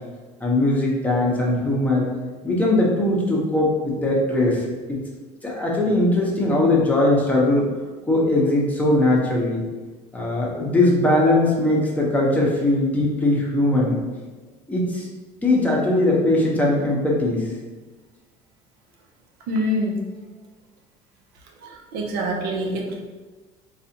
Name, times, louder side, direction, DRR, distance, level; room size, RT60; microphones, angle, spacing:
voice 1, 0.4-2.1 2.4-5.0 5.4-7.7 8.1-9.6 10.1-14.0 14.7-15.1 15.4-17.4, left 1 dB, 10° left, -4 dB, 0.9 m, -20 dB
voice 2, 19.5-20.0 21.6-23.1, equal, 75° right, 0 dB, 0.7 m, -25 dB
4.0 x 2.4 x 2.8 m, 1.3 s
cardioid pair, 115°, 15 cm